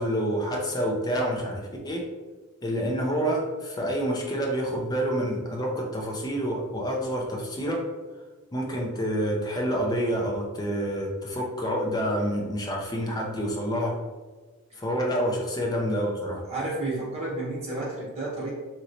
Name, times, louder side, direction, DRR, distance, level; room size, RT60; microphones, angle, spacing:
voice 1, 0.0-2.0 2.6-7.8 8.5-14.0 14.8-16.4, equal, 15° left, 0 dB, 0.4 m, -28 dB
voice 2, 16.5-18.5, right 2 dB, 25° right, -8 dB, 1.0 m, -31 dB
3.0 x 2.9 x 2.6 m, 1.3 s
head